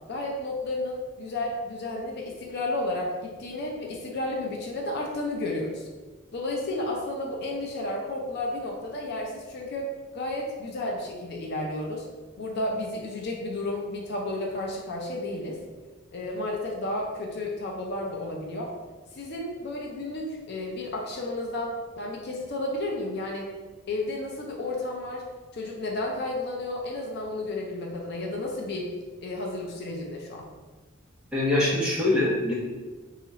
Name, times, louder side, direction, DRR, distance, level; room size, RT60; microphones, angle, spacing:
voice 1, 0.1-5.9 6.3-12.1 12.4-15.6 16.1-18.7 19.1-23.5 23.9-25.2 25.5-28.9 29.2-30.5, left 2 dB, 50° left, 0 dB, 0.4 m, -32 dB
voice 2, 31.3-32.5, left 2 dB, 5° right, -6 dB, 0.8 m, -23 dB
2.8 x 2.4 x 4.0 m, 1.3 s
head